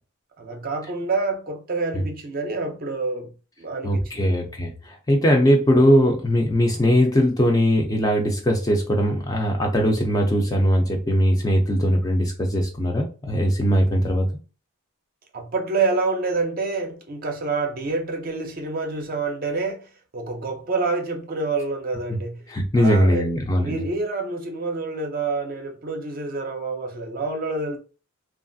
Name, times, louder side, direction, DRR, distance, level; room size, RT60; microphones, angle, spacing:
voice 1, 0.4-3.3 3.6-4.4 15.3-22.4 22.8-23.2 23.5-27.8, right 3 dB, 40° right, 0.5 m, -27 dB
voice 2, 3.8-14.3 22.1-22.2 22.5-23.8, equal, 15° left, 0.4 m, -20 dB
3.0 x 2.4 x 2.6 m
head